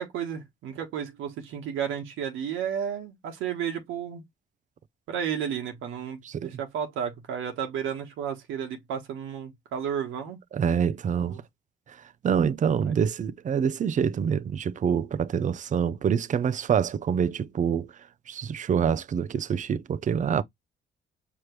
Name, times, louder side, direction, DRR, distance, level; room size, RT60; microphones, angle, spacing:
voice 1, 0.0-4.2 5.1-10.4 11.1-11.4 12.8-12.9, right 8 dB, 90° right, 1.3 m, -32 dB
voice 2, 10.5-11.3 11.9-12.0 12.2-17.9 18.3-20.4, right 7 dB, 40° right, 0.5 m, -26 dB
5.0 x 3.0 x 3.0 m
cardioid pair, 90°, 20 cm